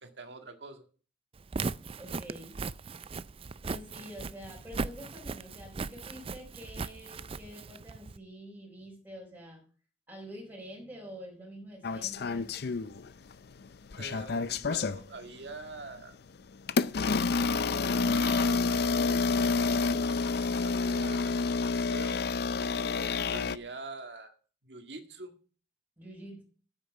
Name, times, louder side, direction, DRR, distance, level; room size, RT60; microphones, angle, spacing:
voice 1, 0.0-0.9 14.0-16.2 17.7-19.3 20.6-22.2 23.3-24.3 24.6-25.4, right 3 dB, 70° right, 6 dB, 1.8 m, -45 dB
Walk footsteps, 1.4-8.2, right 4 dB, 35° right, 0.4 m, -38 dB
voice 2, 1.9-2.6 3.6-9.6 10.1-12.5 26.0-26.4, equal, 10° right, -6 dB, 5.1 m, -47 dB
sound 1, 11.8-13.3 13.7-15.0 15.7-15.9 16.7-23.6, left 4 dB, 65° left, 0.5 m, -28 dB
9.4 x 8.9 x 6.0 m, 0.39 s
head